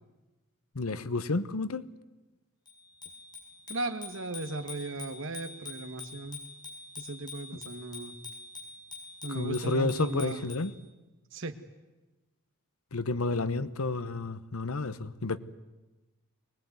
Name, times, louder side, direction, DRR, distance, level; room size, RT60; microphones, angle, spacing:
voice 1, 0.7-1.9 9.3-10.7 12.9-15.4, left 3 dB, 90° left, 1.1 m, -30 dB
Bicycle bell, 2.7-10.7, left 4 dB, 20° left, 5.1 m, -45 dB
voice 2, 3.7-6.4 7.0-8.1 9.2-10.4 11.3-11.5, right 2 dB, 65° right, 1.7 m, -37 dB
24.5 x 19.5 x 9.5 m
head